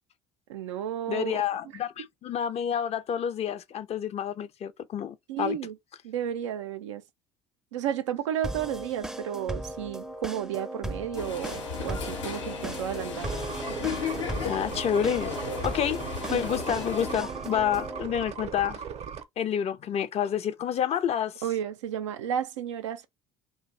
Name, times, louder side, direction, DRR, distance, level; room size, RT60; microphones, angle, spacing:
voice 1, 0.5-1.4 5.3-5.7 6.0-7.0 7.7-13.3 16.3-16.4 21.4-23.1, right 9 dB, 85° right, 0.4 m, -32 dB
voice 2, 1.1-5.6 14.4-15.3 15.6-16.0 16.3-18.8 19.4-21.4, left 9 dB, 45° left, 0.5 m, -29 dB
sound 1, 8.4-18.0, right 1 dB, 5° right, 0.5 m, -37 dB
sound 2, 11.2-17.1, left 6 dB, 90° left, 1.0 m, -35 dB
sound 3, 13.2-19.2, right 7 dB, 45° right, 0.6 m, -38 dB
2.5 x 2.2 x 3.8 m
hypercardioid pair, 65°, 15 cm